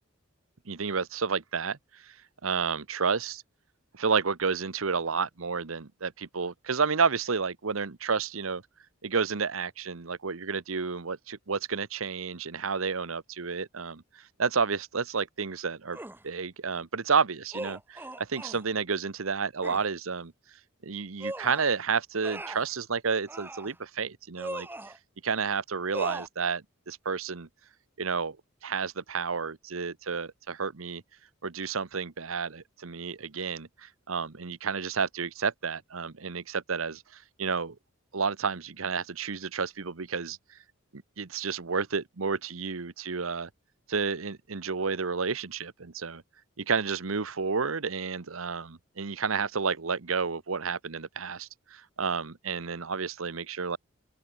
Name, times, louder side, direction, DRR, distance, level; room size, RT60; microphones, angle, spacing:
voice 1, 0.7-2.2 2.4-3.4 3.9-8.6 9.0-16.0 16.2-20.3 20.8-24.7 25.2-27.5 28.0-28.4 28.6-31.0 31.4-37.8 38.1-40.6 40.9-43.5 43.9-46.2 46.6-53.8, right 5 dB, 85° right, 1.0 m, -31 dB
sound 1, 15.9-16.2 17.5-18.7 19.6-19.9 21.2-21.7 22.2-22.7 23.3-23.7 24.4-25.0 25.9-26.3, right 1 dB, 10° right, 1.8 m, -38 dB
open air
head